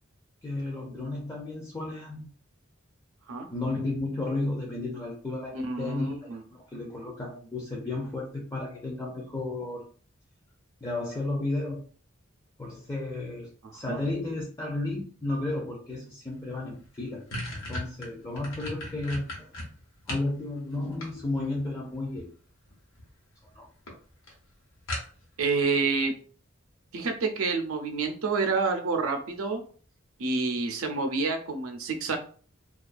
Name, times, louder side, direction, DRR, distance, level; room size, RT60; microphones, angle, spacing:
voice 1, 0.4-2.3 3.5-9.8 10.8-11.8 12.6-19.5 20.1-22.3 23.6-23.7, left 2 dB, 15° left, -1 dB, 0.4 m, -33 dB
voice 2, 5.5-6.4 13.9-14.0 25.4-26.1 26.9-29.6 30.2-32.2, right 4 dB, 90° right, 5 dB, 0.5 m, -28 dB
sound 1, 16.4-16.5 16.8-20.3 20.7-21.6 22.7-23.1 23.4-23.5 23.9-24.0 24.3-24.4 24.9-25.4, left 1 dB, 65° left, 0.9 m, -36 dB
2.3 x 2.2 x 2.5 m, 0.42 s
head